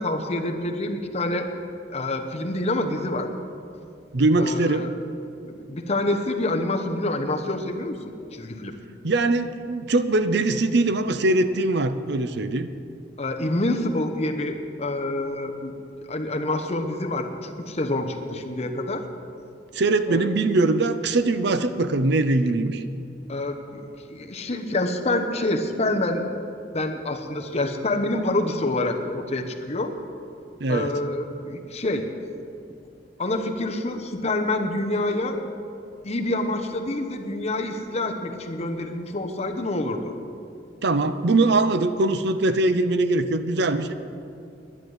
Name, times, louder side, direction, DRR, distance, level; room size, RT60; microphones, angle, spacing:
voice 1, 0.0-1.5 1.9-3.3 4.4-4.9 5.4-8.7 13.2-15.7 16.1-19.1 20.1-20.3 23.3-23.8 24.1-26.2 26.7-29.9 30.7-32.1 33.2-35.4 36.0-40.0, left 2 dB, 35° left, 4 dB, 1.0 m, -27 dB
voice 2, 4.1-4.9 9.0-12.7 19.7-22.8 30.6-30.9 40.8-43.9, right 2 dB, 65° right, 11 dB, 0.6 m, -22 dB
11.0 x 10.5 x 8.0 m, 2.5 s
head